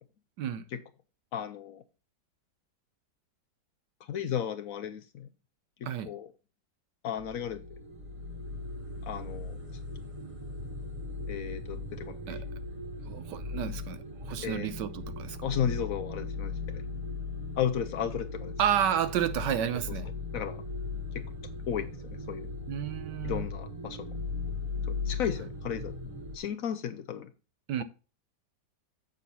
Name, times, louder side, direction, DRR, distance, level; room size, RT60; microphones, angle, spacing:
voice 1, 1.3-1.8 4.1-5.3 6.1-6.3 7.0-7.6 9.0-9.8 11.3-12.4 14.4-14.7 15.4-16.8 17.6-18.6 20.3-20.6 21.1-21.2 21.7-22.5 23.2-24.1 24.8-26.0 26.3-27.3, left 9 dB, 65° left, 0.9 m, -34 dB
sound 1, 7.2-26.4, left 3 dB, 35° right, 0.6 m, -38 dB
voice 2, 13.1-15.4 18.6-20.1 22.7-23.5 27.7-27.8, right 9 dB, 85° right, 1.4 m, -31 dB
8.3 x 6.4 x 4.1 m
omnidirectional pair, 1.8 m